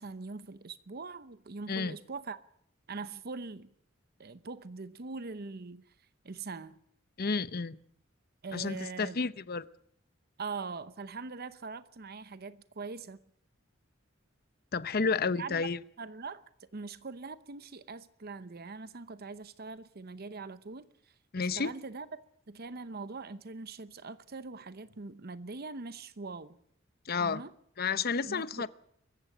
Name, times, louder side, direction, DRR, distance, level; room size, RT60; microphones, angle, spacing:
voice 1, 0.0-2.4 2.9-3.7 4.2-5.8 6.2-6.8 8.4-9.3 10.4-13.2 15.0-15.7 16.0-16.4 16.7-22.1 22.5-26.6 27.2-27.5 28.2-28.7, right 4 dB, 50° right, 0.8 m, -42 dB
voice 2, 7.2-7.8 8.5-9.7 14.7-15.8 21.3-21.7 27.1-27.4 27.8-28.7, left 4 dB, 50° left, 0.8 m, -31 dB
23.5 x 15.0 x 9.0 m
head